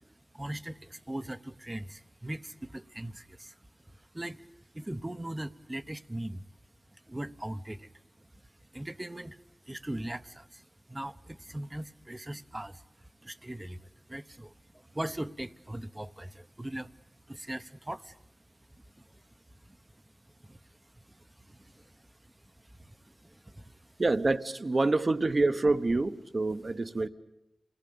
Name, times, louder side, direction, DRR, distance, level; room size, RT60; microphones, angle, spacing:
voice 1, 0.0-4.5 4.7-6.4 6.9-18.2 18.5-24.0, right 1 dB, 20° right, 12 dB, 0.9 m, -41 dB
voice 2, 24.0-27.1, right 2 dB, 50° right, 11 dB, 1.1 m, -27 dB
28.0 x 20.0 x 8.7 m, 0.91 s
cardioid pair, 55°, 0 cm